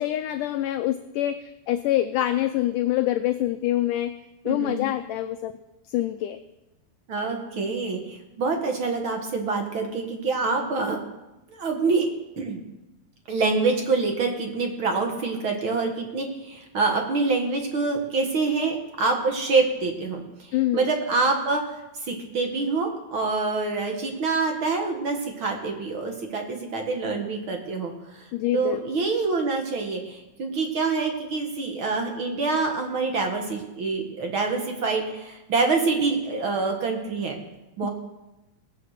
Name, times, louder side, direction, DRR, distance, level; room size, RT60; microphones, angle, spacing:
voice 1, 0.0-4.1 4.5-5.6 5.9-6.4 20.5-20.9 28.3-28.8 37.8-37.9, left 13 dB, 90° left, 8 dB, 1.8 m, -25 dB
voice 2, 4.4-4.8 7.1-11.0 11.5-12.1 12.4-12.6 13.3-20.2 20.7-28.3 28.5-37.4 37.8-37.9, right 4 dB, 50° right, 3 dB, 1.5 m, -26 dB
19.0 x 8.4 x 6.5 m, 1.0 s
omnidirectional pair, 4.3 m